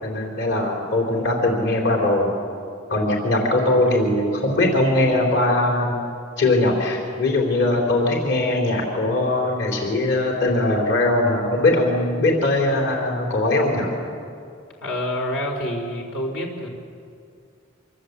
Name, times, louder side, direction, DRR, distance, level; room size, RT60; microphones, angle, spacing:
voice 1, 0.0-2.3 2.9-6.1 6.4-13.9, left 2 dB, 60° left, 0 dB, 4.2 m, -20 dB
voice 2, 14.8-16.7, left 1 dB, 80° left, 1 dB, 4.5 m, -27 dB
26.5 x 25.0 x 8.4 m, 2.3 s
head